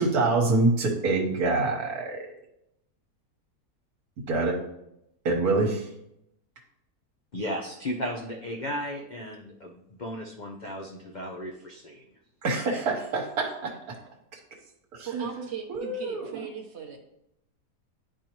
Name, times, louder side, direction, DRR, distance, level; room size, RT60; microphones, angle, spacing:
voice 1, 0.0-2.2 4.3-4.6 5.2-5.9 12.4-13.9 14.9-15.3 15.7-16.3, right 3 dB, 70° right, 0 dB, 1.6 m, -26 dB
voice 2, 7.3-9.7 10.0-12.0, equal, 60° left, 1 dB, 0.4 m, -35 dB
voice 3, 14.3-14.7 15.0-17.0, right 7 dB, 50° right, 4 dB, 0.9 m, -39 dB
10.0 x 4.5 x 3.0 m, 0.81 s
omnidirectional pair, 1.7 m